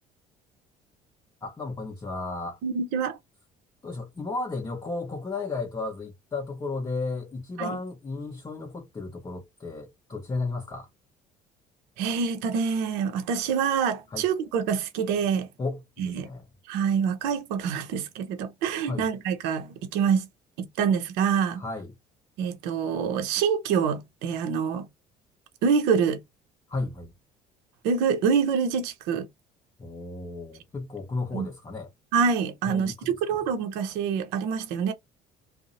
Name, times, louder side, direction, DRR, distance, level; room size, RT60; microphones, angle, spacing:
voice 1, 1.4-2.6 3.8-10.9 14.1-14.2 15.6-16.4 18.8-19.0 21.6-21.9 26.7-27.1 29.8-31.9 32.7-33.1, left 3 dB, 20° left, 0.7 m, -34 dB
voice 2, 2.6-3.2 7.6-7.8 12.0-15.5 16.0-16.3 16.7-20.3 20.6-21.6 22.4-24.9 25.6-26.2 27.8-29.3 31.3-31.5 32.1-34.9, right 6 dB, 65° right, 0.6 m, -26 dB
2.7 x 2.0 x 2.6 m
hypercardioid pair, 55°, 19 cm